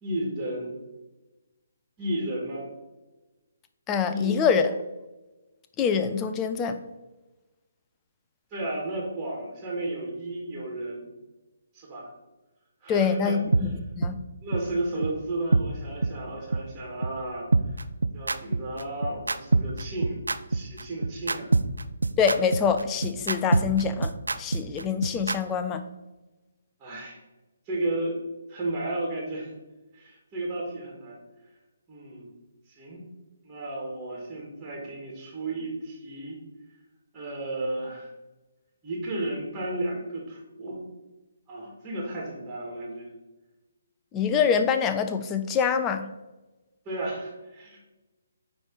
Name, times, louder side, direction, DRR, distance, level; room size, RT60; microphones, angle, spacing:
voice 1, 0.0-0.7 2.0-2.7 4.1-4.5 8.5-11.1 11.7-12.1 12.8-13.7 14.4-17.5 18.1-20.2 20.5-21.5 26.8-27.2 27.7-28.2 28.5-29.5 29.9-31.2 31.9-32.3 32.8-33.0 33.4-36.4 37.1-38.1 38.8-40.8 41.5-43.1 46.9-47.8, right 1 dB, 15° right, -2 dB, 2.0 m, -33 dB
voice 2, 3.9-4.7 5.8-6.8 12.9-14.2 22.2-24.1 24.4-25.8 44.1-46.1, left 6 dB, 15° left, 8 dB, 0.5 m, -25 dB
sound 1, 13.5-13.6 14.0-14.1 14.5-14.6 15.0-15.1 15.5-15.6 16.0-16.1 16.5-16.6 17.0-17.1 17.5-25.4, right 3 dB, 70° right, 0.4 m, -24 dB
9.3 x 3.3 x 4.6 m, 1.1 s
figure-of-eight pair, 140°, 0 cm